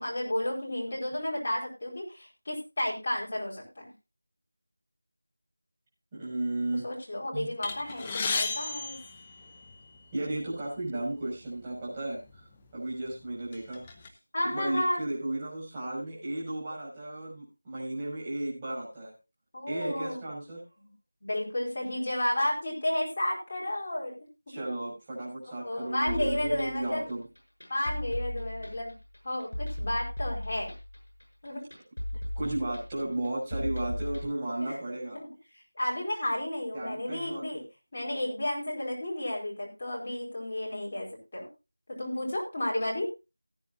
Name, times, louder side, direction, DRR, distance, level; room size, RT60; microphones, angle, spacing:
voice 1, 0.0-3.9 6.7-9.0 14.3-15.0 19.5-20.2 20.8-20.9 21.2-24.2 24.5-24.7 25.6-27.1 27.7-28.9 29.2-30.7 31.4-31.6 34.6-34.7 35.1-35.3 35.8-37.6 37.9-41.5 41.9-43.1, left 1 dB, 30° left, -3 dB, 4.7 m, -32 dB
voice 2, 6.1-6.8 7.3-7.5 10.1-13.8 14.4-19.1 19.7-20.6 24.5-27.2 32.4-35.2 36.7-37.6, right 1 dB, 15° right, -6 dB, 6.1 m, -34 dB
sound 1, 7.6-10.0 10.8-10.9 11.2-11.4 12.3-12.4 12.9-14.1, left 4 dB, 15° left, 0.9 m, -34 dB
sound 2, 26.1-34.3, left 1 dB, 70° left, 6.8 m, -36 dB
18.5 x 9.3 x 2.7 m, 0.27 s
figure-of-eight pair, 175°, 0 cm